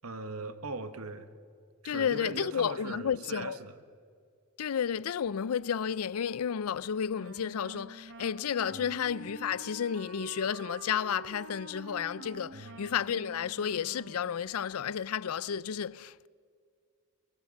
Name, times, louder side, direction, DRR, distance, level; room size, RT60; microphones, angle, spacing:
voice 1, 0.0-1.3 1.8-3.8 8.7-8.9 12.5-12.8, right 3 dB, 85° right, 1.4 m, -40 dB
voice 2, 1.8-3.6 4.6-16.3, left 8 dB, 85° left, 0.4 m, -32 dB
Wind instrument woodwind instrument, 7.1-14.4, right 3 dB, 60° right, 1.9 m, -48 dB
23.5 x 23.0 x 5.4 m
head